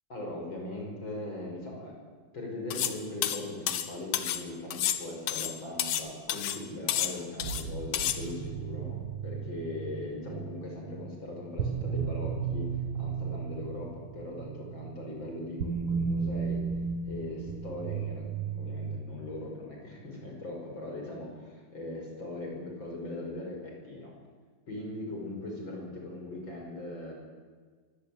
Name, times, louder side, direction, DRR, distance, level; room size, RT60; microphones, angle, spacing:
voice 1, 0.1-1.9 2.3-16.6 17.0-24.2 24.7-27.1, left 2 dB, 25° left, 0 dB, 6.2 m, -40 dB
sound 1, 2.7-3.0 3.2-4.4 4.7-6.0 6.3-6.6 6.9-7.6 7.9-8.2, left 11 dB, 65° left, 2.3 m, -30 dB
sound 2, 7.4-19.0, right 6 dB, 80° right, 1.2 m, -35 dB
23.5 x 17.0 x 9.0 m, 1.5 s
omnidirectional pair, 4.8 m